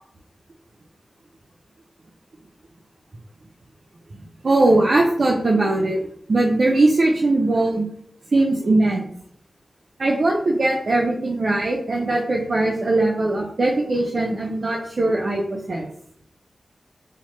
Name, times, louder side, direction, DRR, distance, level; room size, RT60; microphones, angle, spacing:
voice 1, 4.4-6.0 6.3-7.9 8.3-9.1 10.0-15.9, right 2 dB, 65° right, -1 dB, 0.4 m, -20 dB
2.9 x 2.0 x 3.0 m, 0.67 s
cardioid pair, 45°, 0 cm